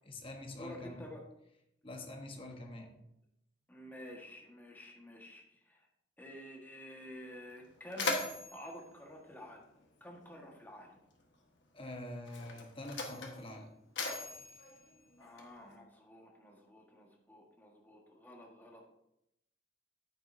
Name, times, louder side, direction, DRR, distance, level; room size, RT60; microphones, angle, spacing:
voice 1, 0.1-1.0 1.8-2.9 11.7-13.7 14.4-14.5, left 1 dB, 30° left, 3 dB, 1.2 m, -45 dB
voice 2, 0.6-1.2 3.7-5.8 6.2-8.2 8.5-9.6 10.0-10.9 15.2-18.9, equal, 10° left, 0 dB, 1.5 m, -50 dB
Mechanisms, 7.0-7.1 7.5-10.2 11.2-11.4 12.2-15.8, left 3 dB, 70° left, 1.4 m, -40 dB
9.1 x 8.7 x 2.7 m, 0.81 s
head